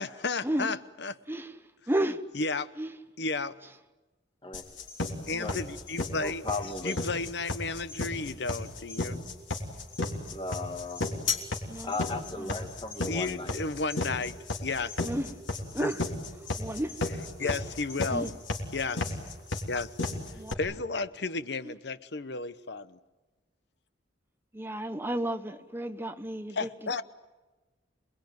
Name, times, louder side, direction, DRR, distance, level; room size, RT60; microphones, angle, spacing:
voice 1, 0.0-1.1 2.3-2.7 3.2-3.6 5.3-6.4 6.8-9.2 13.1-14.9 15.8-15.9 17.4-18.3 18.7-19.2 19.7-19.9 20.6-23.0 26.5-27.0, left 3 dB, 60° left, 0.9 m, -33 dB
voice 2, 1.9-2.2 2.8-3.0 5.3-5.6 11.7-12.0 12.4-12.6 15.0-15.3 15.7-16.0 16.6-17.0 17.4-17.6 18.1-18.3 20.3-20.6 21.6-21.7 24.5-26.7, right 1 dB, 10° right, 1.0 m, -32 dB
sound 1, 4.5-20.5, left 3 dB, 90° left, 3.6 m, -33 dB
voice 3, 6.2-7.0 10.3-11.0 11.8-13.6, left 2 dB, 30° left, 1.5 m, -36 dB
27.5 x 21.0 x 9.3 m
head